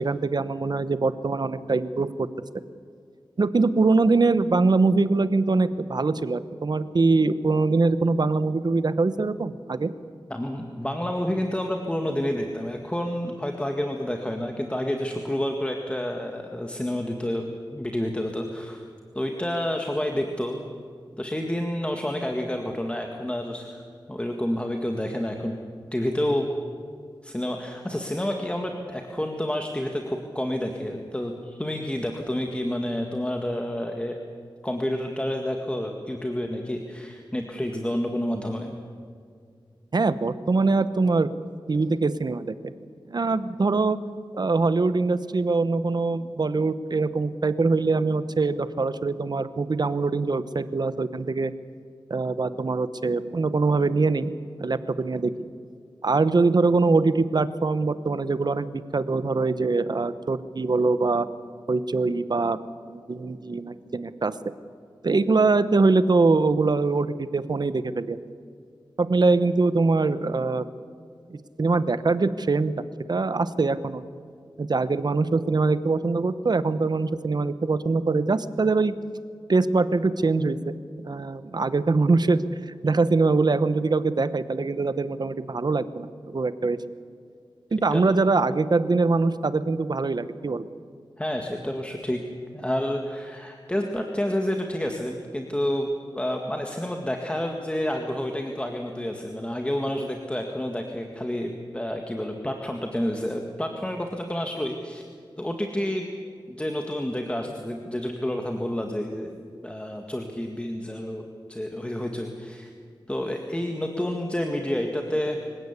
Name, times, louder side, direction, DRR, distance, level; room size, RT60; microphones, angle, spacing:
voice 1, 0.0-2.3 3.4-9.9 39.9-41.3 41.7-42.7 43.1-44.0 44.3-51.5 52.1-54.3 54.6-55.3 56.0-58.7 58.9-61.3 61.7-62.6 62.9-64.3 65.0-68.2 69.0-70.6 71.3-72.7 73.1-74.0 74.6-78.9 79.5-80.7 81.0-86.8 87.7-90.7, right 3 dB, 55° right, 13 dB, 1.0 m, -23 dB
voice 2, 10.3-18.9 19.1-20.7 21.2-25.6 25.9-26.5 27.2-34.1 34.6-38.7 87.9-88.0 91.2-92.2 92.5-95.9 96.1-105.0 105.4-106.1 106.5-112.7 113.1-115.4, left 1 dB, 15° left, 3 dB, 1.9 m, -29 dB
25.5 x 16.5 x 8.3 m, 2.2 s
wide cardioid pair, 85°, 9 cm